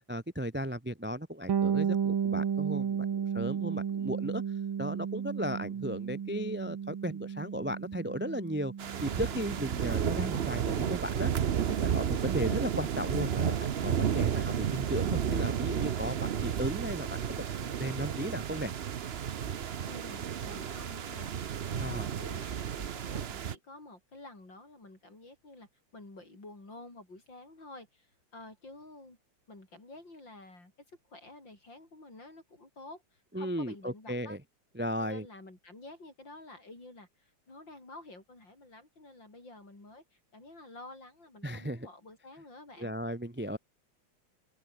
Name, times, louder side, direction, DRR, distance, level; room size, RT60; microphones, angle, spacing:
voice 1, 0.1-4.4 4.8-8.7 9.0-11.3 11.6-18.7 21.7-22.1 33.3-34.4 34.7-35.3 41.4-41.9 42.8-43.6, equal, 10° right, 0.6 m, -35 dB
Bass guitar, 1.5-11.1, right 7 dB, 85° right, 2.7 m, -34 dB
sound 1, 8.8-23.6, right 8 dB, 60° right, 0.6 m, -32 dB
voice 2, 19.9-21.3 21.7-29.2 29.5-30.7 31.1-34.4 35.0-42.9, left 2 dB, 65° left, 8.5 m, -50 dB
omnidirectional pair, 2.1 m